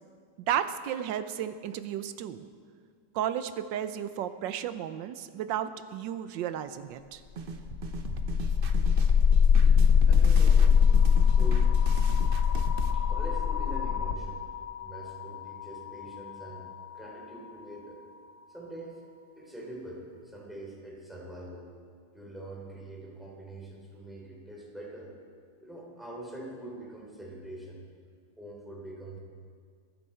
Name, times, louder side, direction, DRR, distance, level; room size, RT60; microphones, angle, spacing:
voice 1, 0.5-2.5 3.1-7.2 9.5-9.6, right 10 dB, 85° right, 12 dB, 1.4 m, -33 dB
sound 1, 7.4-12.9, right 5 dB, 55° right, 0.6 m, -39 dB
sound 2, 7.6-17.5, left 7 dB, 60° left, 0.9 m, -23 dB
voice 2, 10.1-10.9 11.2-11.8 12.9-14.4 14.8-18.0 18.5-18.9 19.3-21.7 22.1-25.1 25.6-27.8 28.4-29.2, right 1 dB, ahead, -3 dB, 3.1 m, -44 dB
22.0 x 10.0 x 4.4 m, 2.1 s
omnidirectional pair, 2.0 m